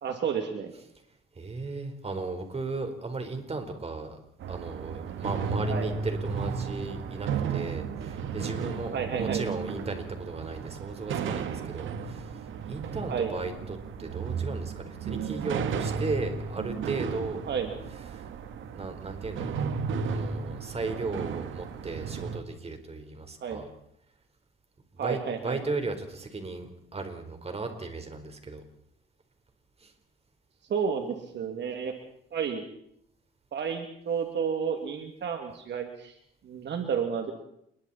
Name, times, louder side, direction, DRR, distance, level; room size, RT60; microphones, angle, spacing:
voice 1, 0.0-0.7 5.7-5.9 8.9-9.4 13.1-13.3 17.5-17.7 23.4-23.6 25.0-25.6 30.7-31.9 32.3-32.6 33.5-36.1 36.4-37.3, right 7 dB, 60° right, 4 dB, 2.8 m, -31 dB
voice 2, 1.3-4.2 4.5-12.4 12.6-17.4 18.1-18.3 18.7-19.7 20.0-23.7 24.9-28.6 29.8-29.9, right 3 dB, 30° right, 6 dB, 4.5 m, -36 dB
sound 1, 4.4-22.4, right 6 dB, 80° right, 1.9 m, -34 dB
29.0 x 22.0 x 4.4 m, 0.73 s
cardioid pair, 90°, 20 cm